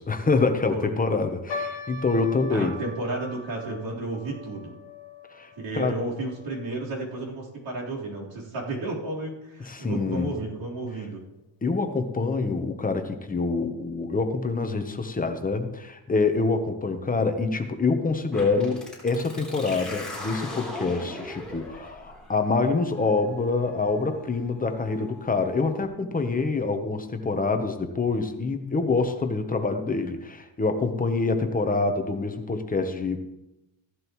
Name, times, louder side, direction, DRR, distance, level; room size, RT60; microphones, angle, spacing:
voice 1, 0.0-2.7 5.3-5.5 5.7-5.9 9.6-10.3 11.6-33.2, left 3 dB, 15° left, 6 dB, 0.9 m, -26 dB
sound 1, 1.5-8.0 8.2-8.3 9.1-9.4 10.0-10.1 10.4-10.6, left 4 dB, 50° left, 1.6 m, -41 dB
voice 2, 2.5-4.8 5.6-11.2, right 2 dB, 60° right, -4 dB, 4.0 m, -32 dB
sound 2, 18.3-25.8, left 1 dB, ahead, 3.4 m, -40 dB
15.5 x 11.5 x 3.1 m, 0.94 s
cardioid pair, 145°, 50 cm